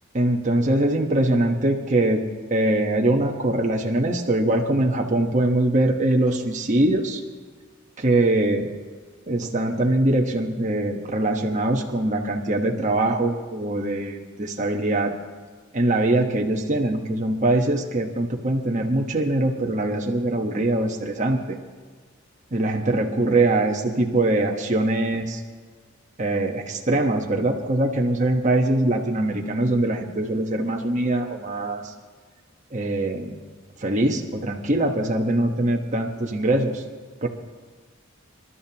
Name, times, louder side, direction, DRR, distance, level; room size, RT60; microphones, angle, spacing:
voice 1, 0.1-7.2 8.0-8.7 9.3-15.1 15.7-21.6 22.5-25.4 26.2-31.8 32.7-33.4 33.8-36.8 37.2-37.3, right 1 dB, 35° right, 1 dB, 1.2 m, -22 dB
27.5 x 12.5 x 2.9 m, 1.5 s
head